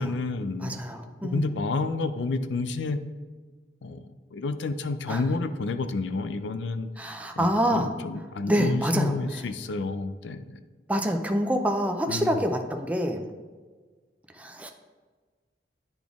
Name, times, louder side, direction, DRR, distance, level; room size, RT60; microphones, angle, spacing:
voice 1, 0.0-0.8 1.2-3.0 3.8-10.6 12.1-12.4, left 3 dB, 90° left, 11 dB, 0.5 m, -30 dB
voice 2, 0.6-1.4 5.1-5.2 7.0-7.9 8.5-9.1 10.9-13.3 14.3-14.7, equal, 10° right, 4 dB, 0.5 m, -26 dB
10.5 x 4.1 x 3.5 m, 1.4 s
head